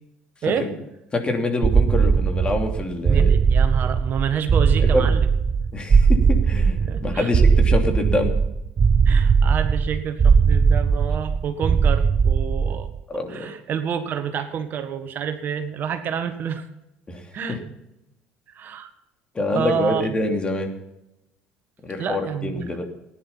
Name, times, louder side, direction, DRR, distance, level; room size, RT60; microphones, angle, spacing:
voice 1, 1.1-3.3 4.8-5.1 5.7-8.3 13.1-13.5 17.1-17.6 19.3-20.7 21.8-22.9, left 2 dB, 25° left, 3 dB, 3.0 m, -26 dB
sound 1, 1.6-13.0, right 5 dB, 35° right, 0.6 m, -19 dB
voice 2, 3.0-5.3 6.9-7.3 9.0-12.9 13.3-16.7 17.3-17.6 18.5-18.9 19.5-20.1 22.0-22.7, right 8 dB, 50° right, 8 dB, 1.5 m, -28 dB
14.5 x 10.5 x 5.8 m, 0.90 s
supercardioid pair, 80°, 4 cm